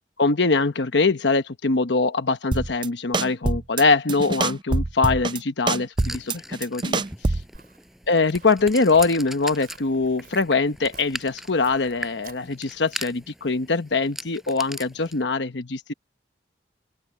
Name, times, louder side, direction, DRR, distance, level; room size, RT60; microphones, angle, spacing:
voice 1, 0.2-7.4 8.1-15.9, left 3 dB, 85° left, 1.1 m, -23 dB
sound 1, 2.5-2.9 3.1-3.8 4.1-5.4 5.7-7.6, right 3 dB, 25° right, 0.5 m, -24 dB
sound 2, 6.0-15.2, equal, ahead, 6.7 m, -39 dB
Walk footsteps, 7.0-13.2, right 5 dB, 55° right, 5.4 m, -54 dB
open air
head